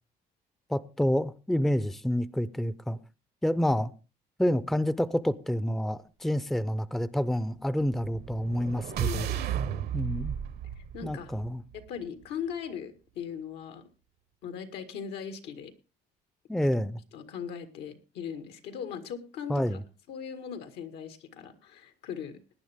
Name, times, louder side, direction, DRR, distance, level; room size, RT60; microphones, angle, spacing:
voice 1, 0.7-3.0 3.4-3.9 4.4-9.3 9.9-10.3 11.0-11.6 16.5-17.0 19.5-19.8, equal, ahead, 0.5 m, -28 dB
sound 1, 7.9-12.0, right 10 dB, 65° right, 1.0 m, -34 dB
voice 2, 9.0-9.4 10.8-11.3 11.7-13.8 14.4-15.7 17.1-19.8 20.1-22.4, left 7 dB, 80° left, 1.9 m, -39 dB
18.0 x 10.0 x 3.5 m
cardioid pair, 110°, 17 cm